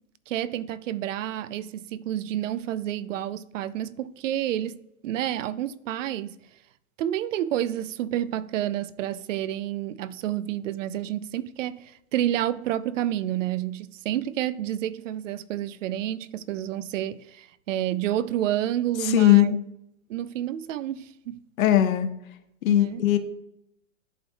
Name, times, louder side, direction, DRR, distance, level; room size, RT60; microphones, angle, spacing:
voice 1, 0.3-6.4 7.0-19.6 20.1-21.4 22.7-23.1, right 12 dB, 65° right, 0.5 m, -29 dB
voice 2, 19.0-19.6 21.6-22.1 22.6-23.2, left 13 dB, 70° left, 0.9 m, -19 dB
11.0 x 4.3 x 2.3 m
hypercardioid pair, 155°, 42 cm